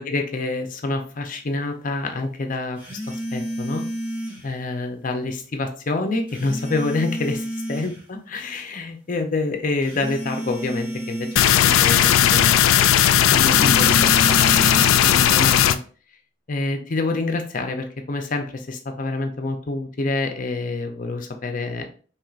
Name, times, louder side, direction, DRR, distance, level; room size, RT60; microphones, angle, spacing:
voice 1, 0.0-3.8 4.4-11.3 11.8-12.5 13.3-15.8 16.5-21.9, left 3 dB, 40° left, 5 dB, 0.6 m, -27 dB
sound 1, 2.8-4.5 6.3-8.0 9.8-11.5 13.3-14.9, equal, 5° right, 1.1 m, -30 dB
sound 2, 11.4-15.8, left 10 dB, 85° left, 0.3 m, -16 dB
4.4 x 3.0 x 2.4 m, 0.40 s
head